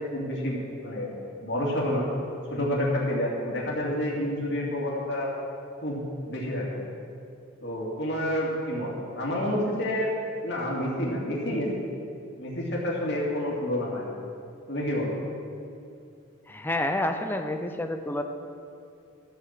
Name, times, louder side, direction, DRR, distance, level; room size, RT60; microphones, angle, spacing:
voice 1, 0.0-2.0 2.5-5.3 5.8-6.0 6.2-6.8 7.6-10.1 10.4-11.7 12.4-14.1 14.7-15.2, left 1 dB, 55° left, -4 dB, 2.7 m, -29 dB
voice 2, 16.5-18.2, left 1 dB, 10° left, 6 dB, 0.5 m, -29 dB
13.5 x 6.6 x 7.6 m, 2.5 s
head